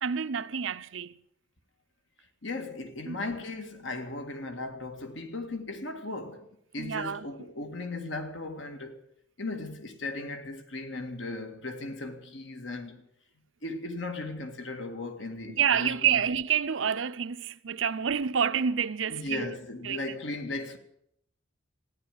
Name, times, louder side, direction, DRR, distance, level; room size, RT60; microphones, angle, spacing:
voice 1, 0.0-1.1 3.1-3.2 6.8-7.3 15.6-19.6 19.8-20.2, right 7 dB, 90° right, 0.7 m, -28 dB
voice 2, 2.4-6.5 6.7-9.0 9.4-13.1 13.6-16.3 19.0-20.8, left 2 dB, 75° left, 2.0 m, -37 dB
14.5 x 10.5 x 9.1 m
head